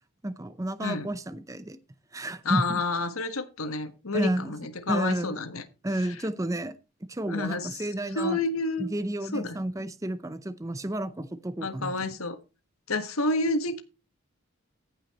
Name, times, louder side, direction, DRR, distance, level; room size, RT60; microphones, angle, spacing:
voice 1, 0.2-1.8 2.1-2.8 4.1-4.5 4.9-5.4 5.8-6.8 7.1-8.4 8.8-11.9, right 1 dB, 15° right, 0.6 m, -31 dB
voice 2, 2.4-5.6 7.3-7.8 8.1-8.9 9.3-9.6 11.6-12.4 12.9-13.8, left 3 dB, 85° left, 1.5 m, -29 dB
15.0 x 5.7 x 4.2 m
head